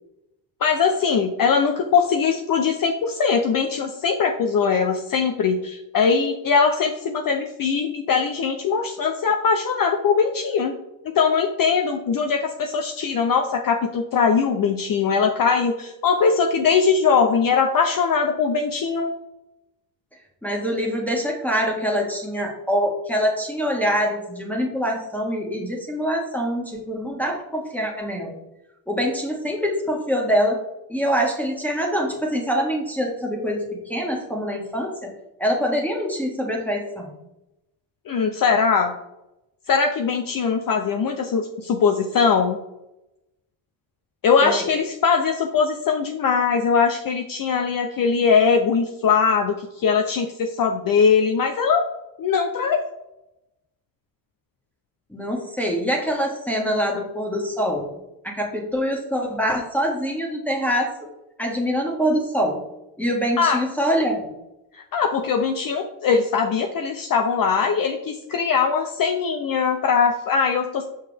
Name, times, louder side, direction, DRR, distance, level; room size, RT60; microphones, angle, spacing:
voice 1, 0.6-10.7 11.0-19.1 38.1-38.9 39.7-42.6 44.2-51.8 52.2-52.8 63.4-63.6 64.7-70.8, left 5 dB, 45° left, 4 dB, 0.7 m, -21 dB
voice 2, 20.4-28.4 28.9-30.6 30.9-35.1 35.4-37.2 44.4-44.6 55.1-57.9 58.2-60.9 61.4-62.6 63.0-64.2, equal, 5° left, -2 dB, 1.6 m, -24 dB
5.6 x 5.4 x 3.4 m, 0.91 s
supercardioid pair, 70°, 47 cm